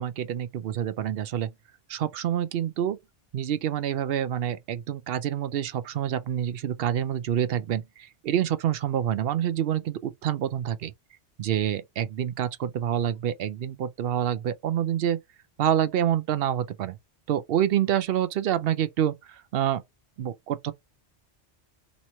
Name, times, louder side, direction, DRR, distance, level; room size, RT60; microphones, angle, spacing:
voice 1, 0.0-1.5 1.9-3.0 3.3-10.9 11.4-15.2 15.6-17.0 17.3-19.8 20.2-20.7, right 10 dB, 65° right, 0.7 m, -27 dB
3.1 x 3.1 x 4.3 m
omnidirectional pair, 1.2 m